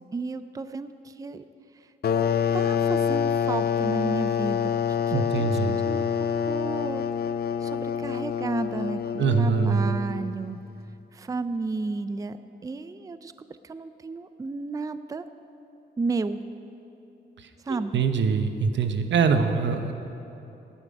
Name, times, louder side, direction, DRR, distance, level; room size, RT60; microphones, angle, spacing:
voice 1, 0.1-1.4 2.5-4.6 5.1-6.0 6.5-7.0 7.6-10.6 11.1-12.4 12.6-13.3 13.6-15.2 16.0-16.4 17.7-18.0, right 3 dB, 20° right, 12 dB, 0.4 m, -32 dB
sound 1, 2.0-10.4, left 8 dB, 60° left, 0.5 m, -26 dB
voice 2, 5.1-5.8 9.2-10.0 17.9-19.9, right 5 dB, 85° right, 7 dB, 1.0 m, -23 dB
17.5 x 10.5 x 5.2 m, 2.9 s
wide cardioid pair, 115°, 19 cm